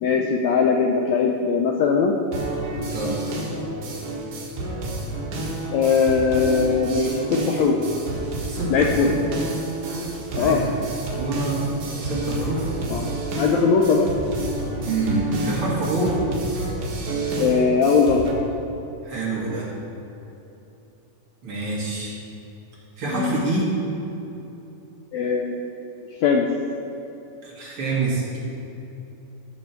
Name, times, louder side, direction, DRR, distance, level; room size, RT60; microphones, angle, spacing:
voice 1, 0.0-2.2 5.7-7.8 8.7-9.1 10.4-10.6 12.9-14.1 17.4-18.2 23.1-23.4 25.1-25.6 26.2-26.5, left 5 dB, 85° left, 1 dB, 1.6 m, -20 dB
sound 1, 2.3-18.3, right 2 dB, 70° right, 3.0 m, -29 dB
voice 2, 2.9-3.2 8.5-9.1 10.3-10.6 11.2-11.6 12.0-12.6 14.9-16.2 19.0-19.7 21.4-22.2 23.0-23.7 27.4-28.4, right 2 dB, 45° right, -6 dB, 2.6 m, -26 dB
15.0 x 6.9 x 4.5 m, 3.0 s
omnidirectional pair, 3.8 m